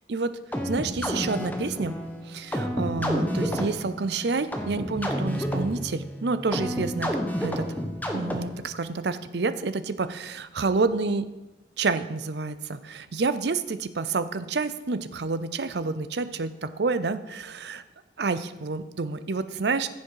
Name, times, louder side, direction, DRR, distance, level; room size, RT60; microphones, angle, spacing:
sound 1, 0.5-8.7, equal, 10° left, 1.1 m, -30 dB
voice 1, 0.6-1.9 2.3-7.2 7.4-7.7 8.1-11.3 11.8-17.8 18.2-19.9, right 4 dB, 60° right, 12 dB, 0.6 m, -29 dB
15.0 x 7.3 x 4.7 m, 1.0 s
head